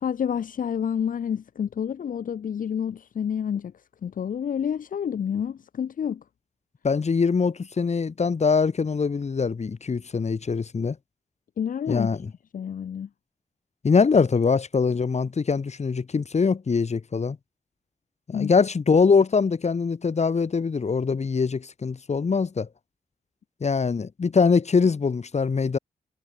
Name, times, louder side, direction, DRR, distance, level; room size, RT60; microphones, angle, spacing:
voice 1, 0.0-3.7 4.0-6.2 11.6-12.1 12.5-13.1 18.3-18.5, left 8 dB, 75° left, 1.3 m, -29 dB
voice 2, 6.8-11.0 11.9-12.3 13.8-17.4 18.3-22.7 23.6-25.8, left 5 dB, 55° left, 4.6 m, -23 dB
cardioid pair, 65°, 14 cm